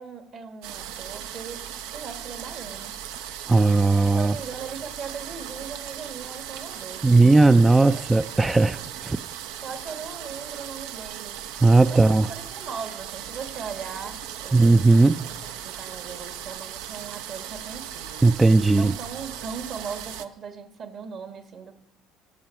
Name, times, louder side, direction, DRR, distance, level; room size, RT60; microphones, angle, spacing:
voice 1, 0.0-1.7 1.9-3.0 4.1-7.0 7.8-8.6 9.6-11.4 11.9-14.9 15.2-18.2 18.7-21.9, right 6 dB, 50° right, 8 dB, 1.3 m, -39 dB
sound 1, 0.6-20.3, right 10 dB, 75° right, 0.5 m, -38 dB
voice 2, 3.5-4.4 7.0-9.2 11.6-12.3 14.5-15.2 18.2-18.9, right 3 dB, 15° right, 10 dB, 0.3 m, -17 dB
12.0 x 7.3 x 5.7 m, 0.84 s
hypercardioid pair, 65°, 0 cm